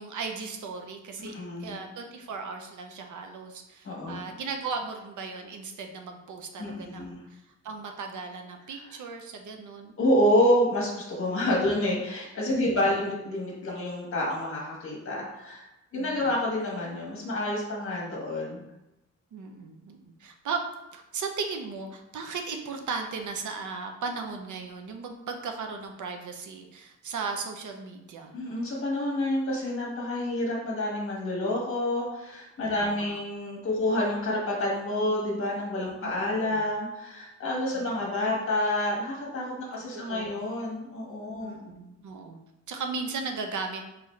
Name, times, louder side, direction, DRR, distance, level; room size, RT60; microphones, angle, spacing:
voice 1, 0.0-9.9 12.6-12.9 15.9-16.3 19.3-20.6 20.9-28.3 32.7-33.2 36.0-36.1 36.5-36.6 37.7-37.9 39.9-40.4 41.4-42.4 42.7-43.8, right 4 dB, 85° right, 4 dB, 0.7 m, -37 dB
voice 2, 1.3-1.8 3.8-4.3 6.6-7.2 10.0-15.6 15.9-18.6 28.3-41.6, left 1 dB, 45° left, -3 dB, 1.5 m, -28 dB
4.1 x 3.9 x 3.2 m, 0.95 s
wide cardioid pair, 180°, 29 cm